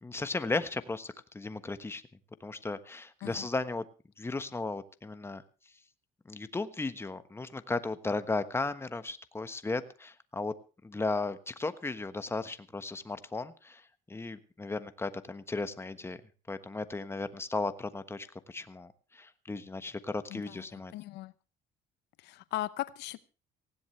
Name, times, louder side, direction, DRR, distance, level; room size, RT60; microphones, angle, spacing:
voice 1, 0.0-2.0 2.4-3.8 4.2-5.4 6.2-10.5 10.8-16.2 16.5-20.9, left 3 dB, 15° left, 11 dB, 1.3 m, -35 dB
voice 2, 20.9-21.3 22.3-23.2, left 15 dB, 85° left, 16 dB, 0.8 m, -37 dB
19.0 x 16.0 x 3.3 m, 0.33 s
cardioid pair, 110°, 17 cm